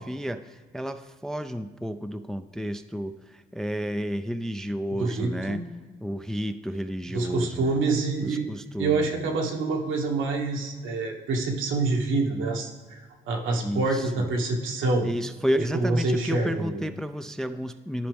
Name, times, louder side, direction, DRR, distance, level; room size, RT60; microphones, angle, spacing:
voice 1, 0.0-5.6 6.0-7.8 8.2-9.1 13.6-14.3 15.0-18.1, equal, 5° left, 10 dB, 0.3 m, -31 dB
voice 2, 5.0-5.6 7.0-8.5 8.8-13.0 13.3-15.1 15.7-16.9, right 3 dB, 80° right, 0 dB, 1.4 m, -26 dB
12.5 x 5.1 x 3.4 m, 1.4 s
cardioid pair, 90°, 20 cm